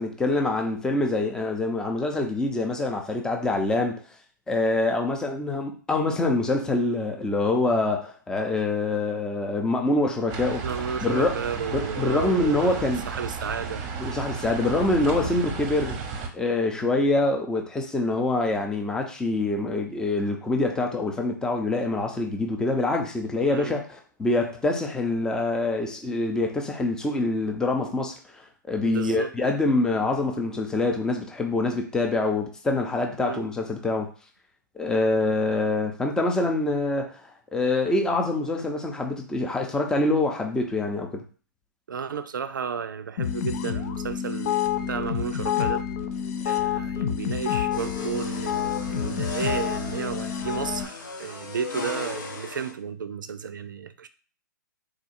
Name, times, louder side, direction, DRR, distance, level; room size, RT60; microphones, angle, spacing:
voice 1, 0.0-4.0 4.5-10.6 11.0-11.4 11.7-13.0 14.0-16.0 16.3-23.8 24.2-34.1 34.8-37.2 37.5-41.2, left 2 dB, 5° left, 0.7 m, -25 dB
sound 1, 10.3-16.3, right 5 dB, 30° right, 0.8 m, -34 dB
voice 2, 10.6-13.8 23.5-23.8 28.8-29.3 33.2-33.4 41.9-45.9 46.4-54.1, right 7 dB, 75° right, 0.5 m, -33 dB
sound 2, 43.2-50.9, left 9 dB, 45° left, 0.6 m, -28 dB
sound 3, 47.7-52.7, left 4 dB, 70° left, 1.4 m, -36 dB
3.8 x 2.3 x 4.3 m
hypercardioid pair, 130°, 11 cm